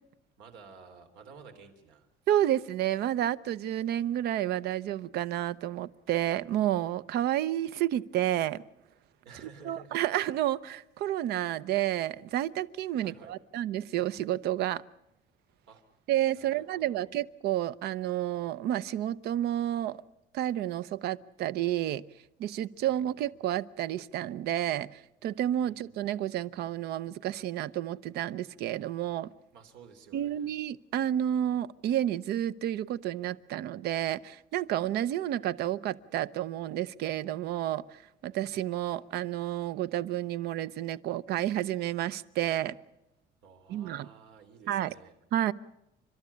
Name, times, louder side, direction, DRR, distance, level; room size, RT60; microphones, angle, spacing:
voice 1, 0.4-2.1 9.2-10.2 13.0-13.3 15.7-15.8 16.3-17.1 22.7-23.1 25.6-25.8 29.5-30.6 43.4-45.2, right 5 dB, 80° right, 6 dB, 3.3 m, -52 dB
voice 2, 2.3-8.6 9.6-14.8 16.1-20.0 20.3-22.0 22.4-29.3 30.1-37.8 38.2-42.8 43.7-44.1 44.7-44.9 45.3-45.5, right 12 dB, 60° right, 17 dB, 0.7 m, -30 dB
29.5 x 12.5 x 8.5 m, 0.90 s
cardioid pair, 160°, 18 cm